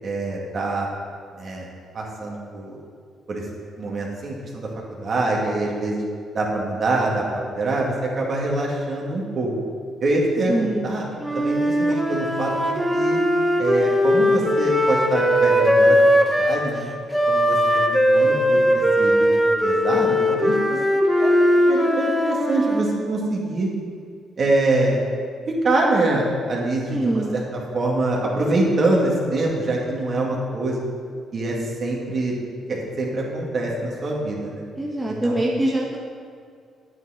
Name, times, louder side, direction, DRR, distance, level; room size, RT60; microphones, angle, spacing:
voice 1, 0.0-0.9 1.4-1.7 1.9-2.8 3.3-3.4 3.8-4.7 5.0-6.0 6.3-9.5 10.0-11.1 11.3-13.2 13.6-16.0 16.4-16.8 17.3-17.8 18.1-20.8 21.1-21.4 21.7-23.7 24.4-25.0 25.5-27.4 27.7-30.8 31.3-32.3 32.7-34.6 35.1-35.5, right 2 dB, 50° right, -2 dB, 2.6 m, -24 dB
voice 2, 10.5-10.9 26.9-27.4 34.8-36.0, right 1 dB, 20° right, -2 dB, 1.3 m, -24 dB
Wind instrument woodwind instrument, 11.2-16.6 17.1-23.0, equal, ahead, 1.4 m, -19 dB
9.4 x 9.2 x 4.5 m, 2.2 s
supercardioid pair, 55°, 0 cm